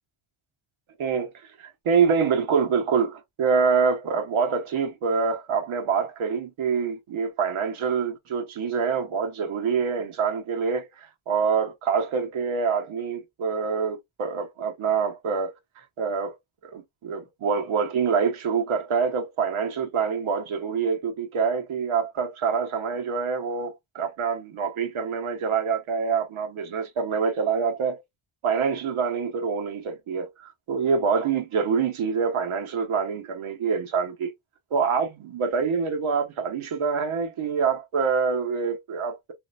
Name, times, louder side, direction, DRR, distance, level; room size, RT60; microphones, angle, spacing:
voice 1, 1.0-1.3 1.6-10.9 11.3-15.6 16.0-16.3 16.6-28.0 28.4-34.3 34.7-39.3, right 5 dB, 90° right, 1.1 m, -26 dB
3.2 x 2.7 x 2.5 m
wide cardioid pair, 115°, 48 cm